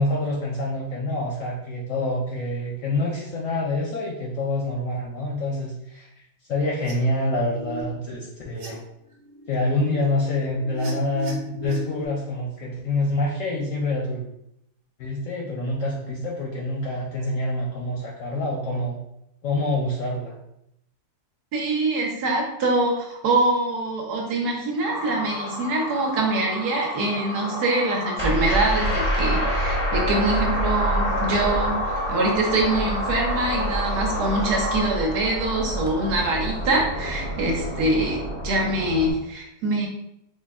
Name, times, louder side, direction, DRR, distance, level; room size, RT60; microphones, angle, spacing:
voice 1, 0.0-6.2 6.5-8.8 9.5-14.2 15.0-19.0 19.4-20.3, left 2 dB, 65° left, -3 dB, 0.9 m, -26 dB
sound 1, 6.7-6.9 7.4-7.8 8.3-8.7 9.0-12.1, right 3 dB, 90° right, 1.5 m, -38 dB
voice 2, 21.5-39.9, right 2 dB, 65° right, 0 dB, 1.3 m, -24 dB
sound 2, 24.8-34.8, left 1 dB, 35° right, 1.0 m, -31 dB
sound 3, 28.2-39.1, equal, 45° left, 0.4 m, -27 dB
3.7 x 2.2 x 3.5 m, 0.79 s
omnidirectional pair, 1.9 m